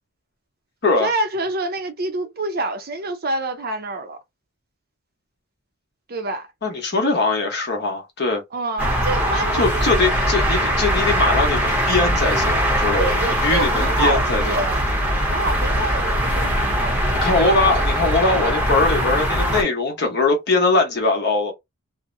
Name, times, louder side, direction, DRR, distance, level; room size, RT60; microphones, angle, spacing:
voice 1, 1.0-4.2 6.1-6.5 8.5-10.3 13.0-14.8 15.3-17.2 17.6-17.8, right 2 dB, 45° right, 0.6 m, -27 dB
voice 2, 6.6-8.4 9.6-14.7 17.2-21.5, left 3 dB, 50° left, 0.9 m, -21 dB
sound 1, 8.8-19.6, equal, 10° right, 0.7 m, -21 dB
2.7 x 2.0 x 2.5 m
head